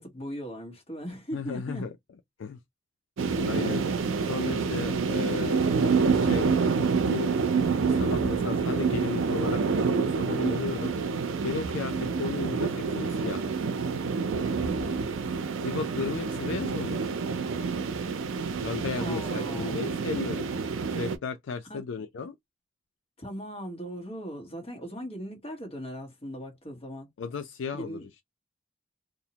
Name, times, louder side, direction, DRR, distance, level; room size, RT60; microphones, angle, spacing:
voice 1, 0.0-1.9 3.6-3.9 11.9-12.2 19.0-19.9 21.6-21.8 23.2-27.1 27.7-28.1, equal, 30° left, 1.1 m, -39 dB
voice 2, 1.3-1.9 2.4-2.6 3.4-3.8 4.2-5.7 6.1-6.5 7.1-7.3 7.8-10.9 11.4-13.5 15.6-17.1 18.6-20.5 20.9-22.3 27.2-28.1, left 5 dB, 70° left, 0.4 m, -34 dB
sound 1, 3.2-21.2, right 5 dB, 90° right, 0.5 m, -27 dB
2.5 x 2.1 x 2.8 m
head